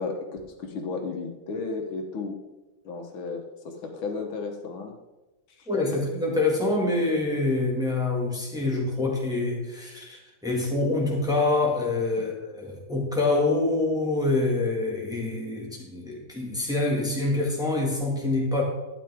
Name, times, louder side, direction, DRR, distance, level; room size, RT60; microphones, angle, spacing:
voice 1, 0.0-2.4 2.8-5.0 5.6-5.7 12.2-12.3, left 4 dB, 90° left, 3 dB, 2.1 m, -34 dB
voice 2, 5.7-18.6, left 2 dB, ahead, -2 dB, 1.8 m, -26 dB
12.0 x 9.1 x 3.6 m, 1.1 s
omnidirectional pair, 2.1 m